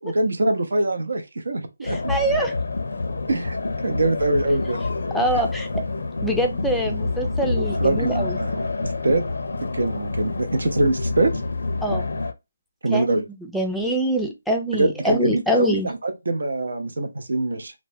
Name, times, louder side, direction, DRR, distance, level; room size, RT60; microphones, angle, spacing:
voice 1, 0.0-2.1 3.3-3.6 3.8-4.8 7.6-9.2 9.7-11.3 12.8-13.2 14.7-17.7, right 2 dB, 75° right, 0.7 m, -23 dB
sound 1, 1.8-12.3, left 3 dB, 80° left, 0.5 m, -27 dB
voice 2, 1.8-2.5 5.1-5.8 6.2-8.4 11.8-12.1 12.9-13.2 13.5-15.9, right 1 dB, ahead, 0.4 m, -24 dB
3.1 x 2.2 x 2.6 m
hypercardioid pair, 165°, 0 cm